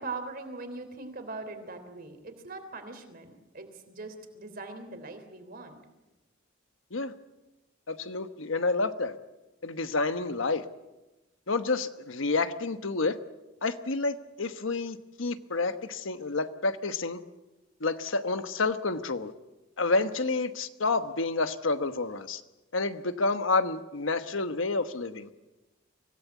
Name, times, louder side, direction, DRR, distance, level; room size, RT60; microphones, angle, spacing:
voice 1, 0.0-5.8, right 3 dB, 50° right, 7 dB, 3.5 m, -41 dB
voice 2, 7.9-9.2 9.6-10.6 11.5-13.2 13.6-17.2 17.8-19.3 19.8-22.4 22.7-25.3, left 3 dB, 80° left, 10 dB, 1.2 m, -29 dB
24.5 x 17.0 x 8.3 m, 1.1 s
head